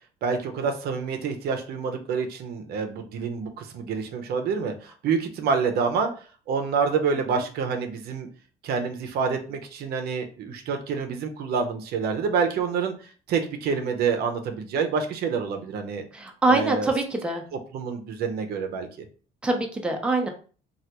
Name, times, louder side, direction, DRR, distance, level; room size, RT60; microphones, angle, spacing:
voice 1, 0.2-6.1 6.5-8.3 8.6-16.0 16.5-16.9 17.7-18.9, right 5 dB, 70° right, 5 dB, 0.6 m, -27 dB
voice 2, 16.1-17.4 19.4-20.3, right 2 dB, 5° right, 2 dB, 0.6 m, -24 dB
3.2 x 2.3 x 2.9 m, 0.39 s
cardioid pair, 110°, 17 cm